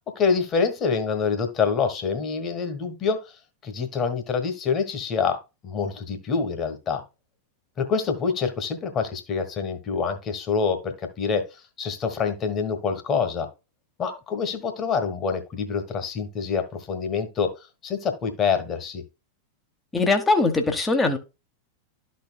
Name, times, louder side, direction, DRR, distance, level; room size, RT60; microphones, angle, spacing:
voice 1, 0.1-7.0 7.8-11.5 11.8-13.5 14.0-17.5 17.8-19.0, left 5 dB, 30° left, 7 dB, 1.5 m, -26 dB
voice 2, 19.9-21.2, left 3 dB, 10° left, 5 dB, 1.0 m, -21 dB
12.5 x 4.3 x 2.3 m, 0.27 s
figure-of-eight pair, 90°, 0 cm